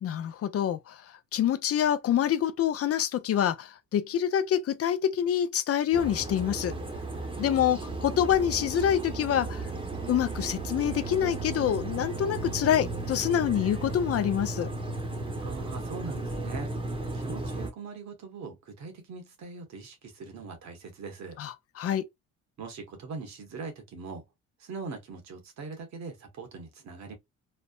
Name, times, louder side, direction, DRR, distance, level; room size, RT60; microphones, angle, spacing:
voice 1, 0.0-1.0 1.3-6.7 7.4-9.7 10.1-14.7 21.4-22.0, left 10 dB, 50° left, 0.5 m, -26 dB
sound 1, 5.9-17.7, right 2 dB, 15° right, 0.9 m, -35 dB
voice 2, 15.4-16.7 17.1-21.4 22.6-24.2 24.6-27.1, right 4 dB, 65° right, 1.2 m, -41 dB
3.2 x 2.0 x 2.3 m
cardioid pair, 90°, 30 cm